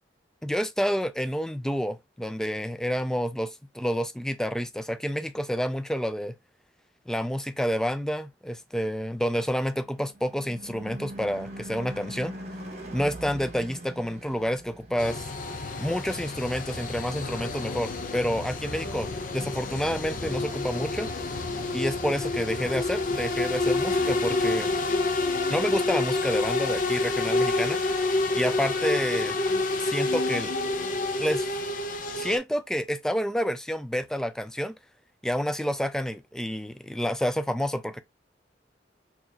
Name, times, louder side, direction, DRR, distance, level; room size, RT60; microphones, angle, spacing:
voice 1, 0.4-6.3 7.1-12.3 12.9-15.2 15.8-21.1 21.7-24.7 25.5-27.8 28.3-29.3 29.8-30.5 31.2-31.5 32.1-34.7 35.2-38.0, equal, 5° left, 0.3 m, -29 dB
Car passing by / Truck / Engine, 9.4-18.0, right 1 dB, 35° right, 1.2 m, -43 dB
sound 1, 15.0-32.4, left 2 dB, 45° left, 0.6 m, -28 dB
4.3 x 2.9 x 2.7 m
head